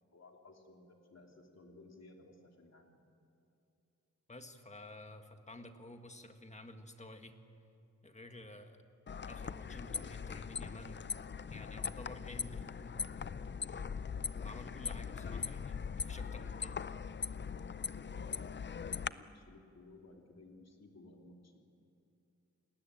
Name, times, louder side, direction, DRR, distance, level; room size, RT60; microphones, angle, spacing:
voice 1, 0.1-3.0 14.7-15.4 15.9-17.0 17.5-21.6, left 2 dB, 60° left, 2 dB, 3.0 m, -58 dB
voice 2, 4.3-7.4 8.0-8.8 9.3-11.0 11.5-13.0 14.4-16.8, left 1 dB, 25° left, 6 dB, 1.7 m, -51 dB
sound 1, 9.1-19.1, left 6 dB, 40° left, 0.5 m, -41 dB
29.5 x 19.5 x 8.9 m, 2.6 s
wide cardioid pair, 145°, 29 cm